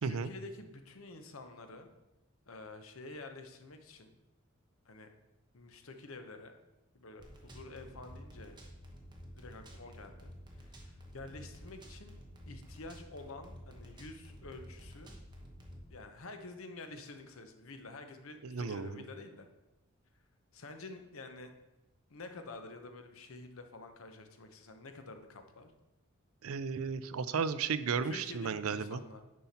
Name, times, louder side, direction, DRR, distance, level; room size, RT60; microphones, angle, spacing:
voice 1, 0.0-1.9 2.5-4.2 4.8-5.1 5.5-6.6 6.9-8.6 9.3-10.3 10.6-12.2 12.5-15.1 15.9-19.5 20.5-21.5 22.1-25.7 28.0-29.2, left 2 dB, 75° left, 6 dB, 1.0 m, -49 dB
sound 1, 7.2-15.9, equal, 20° right, 1.1 m, -51 dB
voice 2, 18.4-19.0 26.4-29.0, right 5 dB, 80° right, 14 dB, 0.5 m, -34 dB
9.4 x 5.6 x 4.3 m, 0.98 s
head